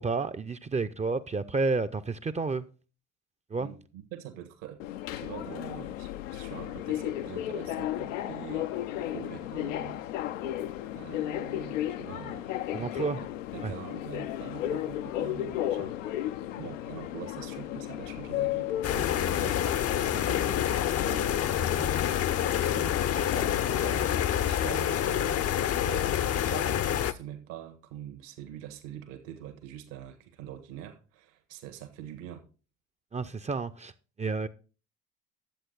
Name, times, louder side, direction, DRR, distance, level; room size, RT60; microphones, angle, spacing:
voice 1, 0.0-2.7 3.5-3.7 12.7-13.2 13.6-13.7 33.1-33.9 34.2-34.5, right 4 dB, 20° right, 0.6 m, -30 dB
voice 2, 3.6-4.8 5.2-10.0 10.9-13.3 13.5-16.2 16.6-22.0 22.7-25.5 25.8-32.4, right 11 dB, 65° right, 1.4 m, -44 dB
Subway metro underground, 4.8-24.2, left 13 dB, 80° left, 0.6 m, -35 dB
sound 1, 18.8-27.1, left 10 dB, 40° left, 0.6 m, -27 dB
10.5 x 7.7 x 3.9 m
hypercardioid pair, 60°, 38 cm